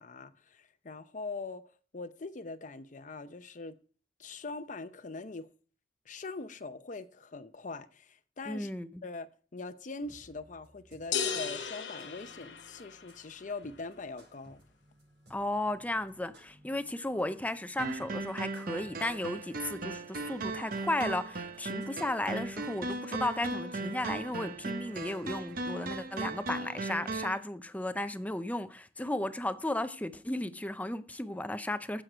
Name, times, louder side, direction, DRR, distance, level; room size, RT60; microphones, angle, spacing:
voice 1, 0.0-1.6 1.9-3.7 4.2-5.5 6.1-8.7 9.0-14.6, left 3 dB, 45° left, 0.7 m, -42 dB
voice 2, 8.5-8.9 15.3-32.0, left 1 dB, 10° left, 0.6 m, -34 dB
sound 1, 10.0-26.5, equal, 90° right, 5.3 m, -61 dB
sound 2, 11.1-13.2, left 7 dB, 85° left, 1.0 m, -35 dB
sound 3, 17.8-27.4, right 3 dB, 55° right, 0.9 m, -37 dB
9.9 x 7.7 x 4.5 m
head